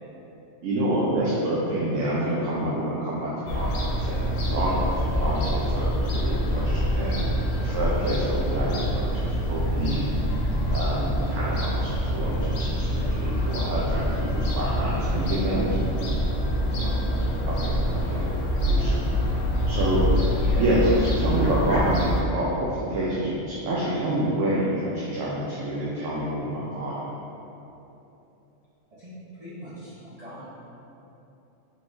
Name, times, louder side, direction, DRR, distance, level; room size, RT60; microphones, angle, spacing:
voice 1, 0.6-4.7 5.1-7.2 7.5-10.0 10.7-15.9 17.5-18.2 18.7-19.0 19.7-20.0 20.6-27.1, right 1 dB, 80° right, -7 dB, 0.9 m, -27 dB
Fowl / Gull seagull, 3.5-22.2, equal, 85° left, 0.9 m, -25 dB
voice 2, 14.1-14.6 16.7-17.0 18.0-18.2 20.4-20.7 29.0-30.4, right 1 dB, 40° right, -12 dB, 0.5 m, -42 dB
3.9 x 3.0 x 2.5 m, 3.0 s
omnidirectional pair, 1.3 m